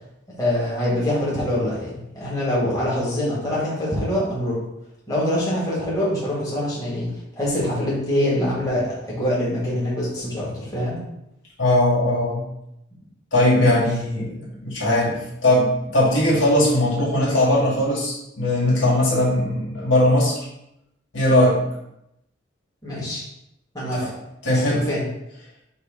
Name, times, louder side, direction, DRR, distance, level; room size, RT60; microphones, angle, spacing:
voice 1, 0.4-4.6 5.1-7.1 7.4-11.0 13.5-13.7 22.8-23.2 23.7-24.1 24.5-25.0, left 1 dB, 20° left, -7 dB, 1.9 m, -24 dB
voice 2, 11.6-12.4 13.3-20.4 21.1-21.6 24.0-24.1 24.4-24.8, left 1 dB, 75° left, -5 dB, 2.1 m, -19 dB
6.6 x 2.8 x 5.0 m, 0.84 s
head